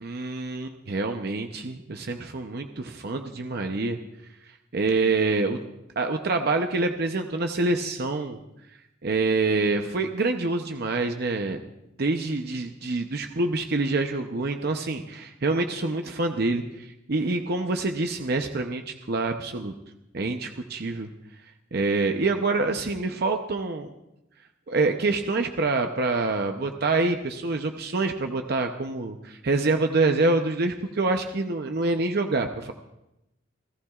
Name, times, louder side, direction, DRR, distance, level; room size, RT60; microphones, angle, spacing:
voice 1, 0.0-4.0 4.7-5.6 6.0-8.4 9.0-11.6 12.0-19.7 20.1-21.1 21.7-23.9 24.7-32.7, right 3 dB, 50° right, 5 dB, 0.7 m, -26 dB
29.0 x 15.0 x 2.4 m, 0.91 s
head